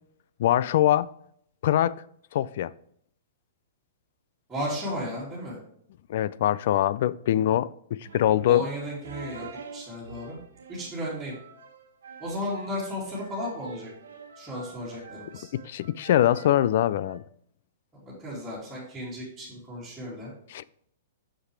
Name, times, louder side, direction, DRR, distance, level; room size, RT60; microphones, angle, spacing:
voice 1, 0.4-1.1 1.6-2.0 2.3-2.7 6.1-8.7 15.3-17.2 20.5-20.6, left 12 dB, 55° left, 0.3 m, -23 dB
voice 2, 4.5-5.6 8.5-9.4 9.7-10.4 10.7-11.3 12.2-13.9 14.4-15.5 18.1-20.3, equal, 5° right, 2.7 m, -34 dB
sound 1, 8.0-17.2, right 5 dB, 85° right, 1.2 m, -47 dB
7.3 x 6.8 x 3.3 m
hypercardioid pair, 145°, 0 cm